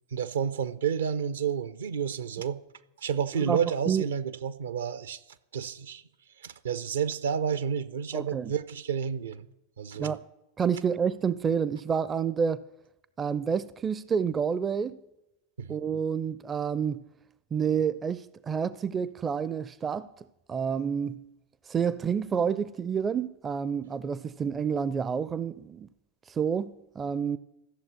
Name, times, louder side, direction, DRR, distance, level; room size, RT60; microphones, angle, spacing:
voice 1, 0.1-2.6 3.0-5.2 5.5-6.0 6.4-9.5 9.8-10.1 15.6-15.8, right 7 dB, 65° right, 0.8 m, -30 dB
voice 2, 8.1-8.5 10.0-10.2 10.6-12.6 13.2-15.0 15.7-17.0 17.5-20.1 20.5-21.2 21.7-25.9 26.3-27.4, right 7 dB, 20° right, 0.5 m, -29 dB
14.5 x 7.3 x 9.7 m
figure-of-eight pair, 90°, 0 cm